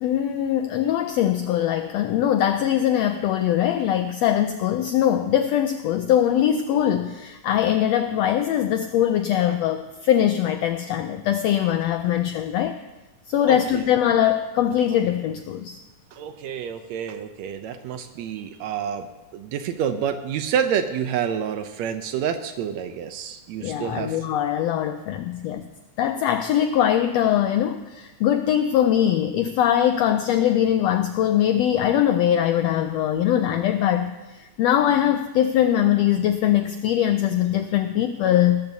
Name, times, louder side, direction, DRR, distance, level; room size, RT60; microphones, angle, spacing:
voice 1, 0.0-12.8 13.3-15.8 23.6-25.6 26.0-38.6, left 10 dB, 85° left, 8 dB, 1.5 m, -22 dB
voice 2, 13.5-13.9 16.1-19.1 19.3-24.2, right 8 dB, 75° right, 8 dB, 1.7 m, -28 dB
18.5 x 14.0 x 2.8 m, 1.1 s
omnidirectional pair, 3.5 m